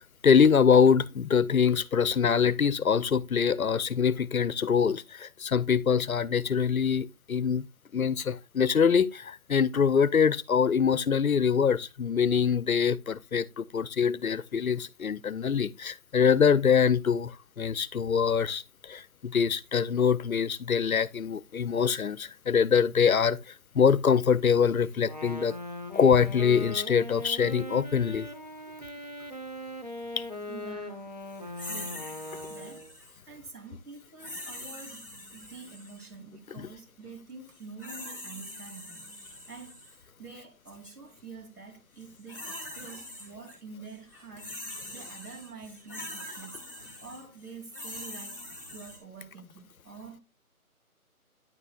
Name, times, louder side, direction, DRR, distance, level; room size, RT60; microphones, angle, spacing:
voice 1, 0.2-7.7 7.9-25.5 25.9-28.3 30.2-30.3 36.6-36.7, left 6 dB, 70° left, 0.7 m, -24 dB
Wind instrument woodwind instrument, 25.0-33.0, left 1 dB, 30° right, 0.8 m, -40 dB
voice 2, 30.5-31.2 31.6-32.1 32.5-32.9 33.3-39.2 39.5-44.6 44.9-46.7 47.0-48.4 48.7-50.2, right 4 dB, 85° right, 3.9 m, -47 dB
sound 1, 31.6-33.2 34.2-36.1 37.5-39.9 40.7-40.9 42.0-43.6 43.9-49.0, left 1 dB, 15° right, 1.3 m, -43 dB
9.9 x 7.0 x 2.4 m
figure-of-eight pair, 180°, 45 cm